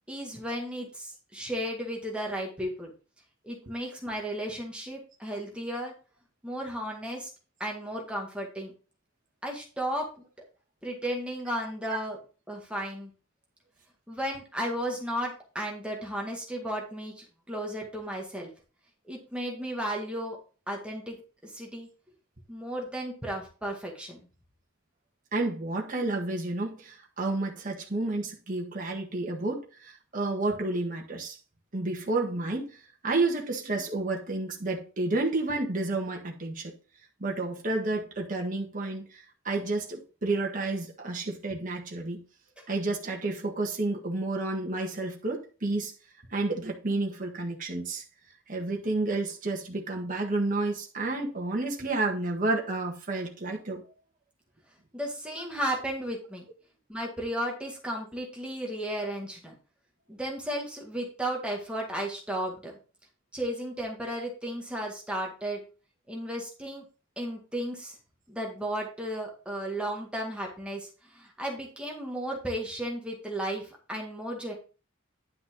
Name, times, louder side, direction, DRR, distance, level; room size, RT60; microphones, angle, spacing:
voice 1, 0.1-2.9 3.4-5.9 6.4-7.3 7.6-8.7 9.4-10.2 10.8-12.2 12.5-13.1 14.1-18.5 19.1-20.4 20.7-21.9 22.5-24.2 42.6-42.7 54.9-56.4 56.9-59.5 60.1-62.7 63.3-65.6 66.1-66.8 67.2-68.0 68.3-74.5, equal, 5° right, 1.9 m, -34 dB
voice 2, 25.3-31.4 31.7-36.7 37.2-42.2 42.7-45.9 46.3-48.0 48.5-53.8, right 2 dB, 40° right, 1.6 m, -30 dB
10.5 x 5.7 x 3.8 m
head